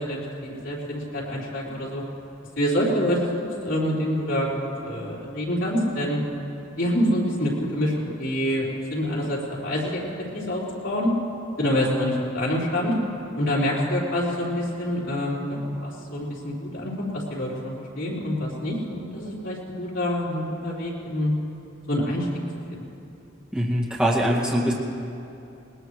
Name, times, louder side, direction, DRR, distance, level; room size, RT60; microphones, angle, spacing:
voice 1, 0.0-2.0 2.6-6.2 6.8-10.0 10.3-11.1 11.6-12.9 13.3-15.5 15.8-21.3 21.9-22.3 22.7-22.8, equal, 65° left, -6 dB, 4.1 m, -26 dB
voice 2, 23.5-24.7, equal, 5° right, -5 dB, 2.0 m, -22 dB
20.0 x 20.0 x 3.2 m, 2.7 s
head